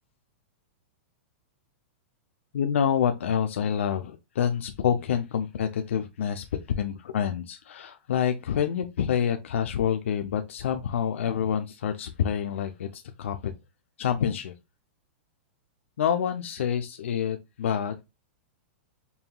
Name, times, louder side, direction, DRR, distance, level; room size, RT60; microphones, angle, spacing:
voice 1, 2.5-6.4 6.8-13.5 14.0-14.5 16.0-18.0, left 8 dB, 85° left, 0.5 m, -27 dB
5.4 x 2.8 x 2.3 m
supercardioid pair, 155°, 7 cm